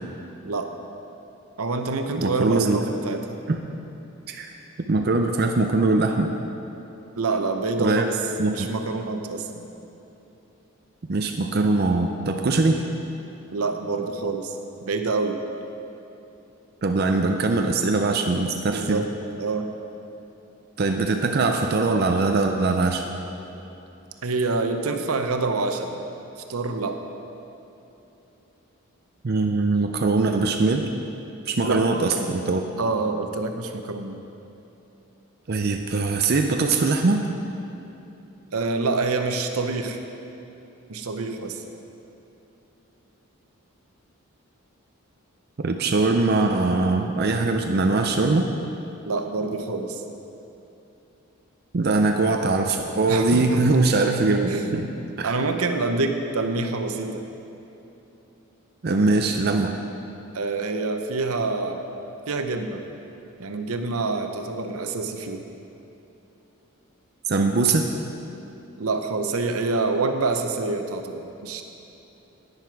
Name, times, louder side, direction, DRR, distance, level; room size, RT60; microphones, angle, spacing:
voice 1, 1.6-3.4 7.2-8.2 8.5-9.7 13.5-14.6 14.8-15.4 18.7-19.1 19.4-19.7 24.2-25.9 26.5-27.0 31.6-31.8 32.8-34.2 38.5-40.0 40.9-41.6 49.1-50.0 53.1-53.6 54.5-54.8 55.2-57.3 60.3-61.8 62.3-62.8 63.4-65.4 68.8-71.6, right 3 dB, 80° right, 6 dB, 0.8 m, -26 dB
voice 2, 2.1-3.0 3.5-3.6 4.3-4.5 4.9-6.3 7.8-8.1 8.4-8.7 11.1-12.8 16.8-19.1 20.8-23.0 29.2-30.9 31.5-32.6 35.5-37.2 45.6-48.5 51.7-54.9 55.2-55.4 58.8-59.8 67.3-67.9, right 3 dB, 45° right, 4 dB, 0.5 m, -22 dB
10.5 x 9.7 x 4.7 m, 3.0 s
head